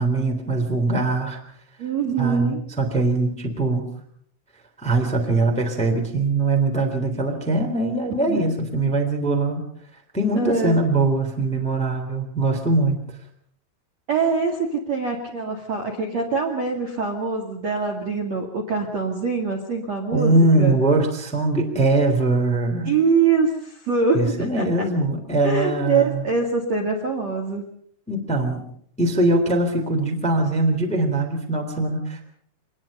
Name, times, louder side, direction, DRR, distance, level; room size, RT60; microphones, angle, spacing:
voice 1, 0.0-1.4 2.2-3.8 4.8-9.6 10.1-13.0 20.1-22.9 24.1-26.2 28.1-28.7 29.0-32.2, right 2 dB, ahead, 3 dB, 2.2 m, -22 dB
voice 2, 1.8-2.6 8.3-8.5 10.3-10.8 14.1-20.8 22.8-24.6 25.4-27.6, right 4 dB, 45° right, 1 dB, 2.4 m, -24 dB
25.0 x 19.5 x 5.5 m, 0.64 s
omnidirectional pair, 5.7 m